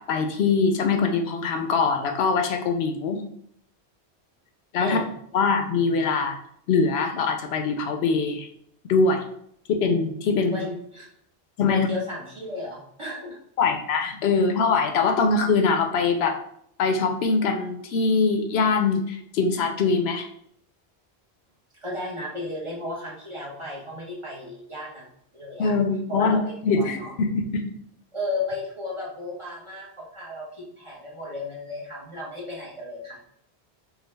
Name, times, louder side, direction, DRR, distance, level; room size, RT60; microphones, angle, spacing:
voice 1, 0.0-3.2 4.7-5.0 5.3-6.4 6.7-8.5 8.9-9.2 9.7-10.6 11.6-11.9 13.6-16.4 16.8-20.3 25.6-26.4 26.6-27.7, left 4 dB, 80° left, 5 dB, 0.8 m, -23 dB
voice 2, 10.5-11.1 11.7-13.4 21.8-25.1 25.3-25.7 26.1-27.1 28.1-33.2, left 2 dB, 30° right, -4 dB, 1.0 m, -34 dB
4.7 x 2.3 x 3.2 m, 0.69 s
omnidirectional pair, 1.1 m